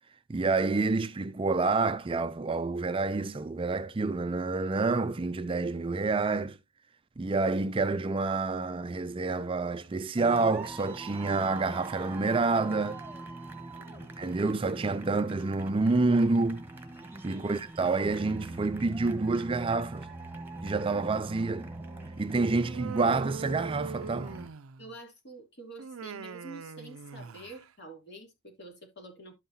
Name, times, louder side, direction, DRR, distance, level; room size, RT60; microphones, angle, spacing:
voice 1, 0.3-6.6 7.2-13.0 14.2-16.6 17.2-20.1 20.6-21.7 22.2-24.3, right 3 dB, 25° right, 0.4 m, -28 dB
sound 1, 10.2-24.5, right 2 dB, 10° right, 1.3 m, -43 dB
voice 2, 13.8-14.1 17.3-17.6 24.8-29.3, right 1 dB, 55° left, 3.0 m, -48 dB
Human voice, 22.6-24.9 25.8-27.6, right 6 dB, 90° right, 0.5 m, -41 dB
12.5 x 5.5 x 2.7 m
head